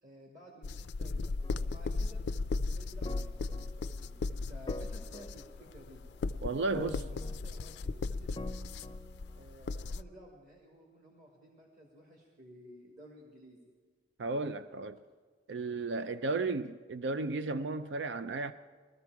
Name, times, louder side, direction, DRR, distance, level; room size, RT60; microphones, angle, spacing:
voice 1, 0.0-2.2 2.7-6.0 6.9-8.5 9.4-13.7, equal, 45° right, 1.9 m, -55 dB
sound 1, 0.6-10.0, left 3 dB, 75° left, 0.4 m, -36 dB
sound 2, 1.4-2.0 3.0-4.1 4.7-6.1 6.7-7.8 8.4-9.4, left 1 dB, 20° left, 0.5 m, -46 dB
voice 2, 6.4-7.0 14.2-15.0 15.5-18.5, right 3 dB, 85° right, 0.5 m, -34 dB
20.5 x 13.5 x 4.7 m
head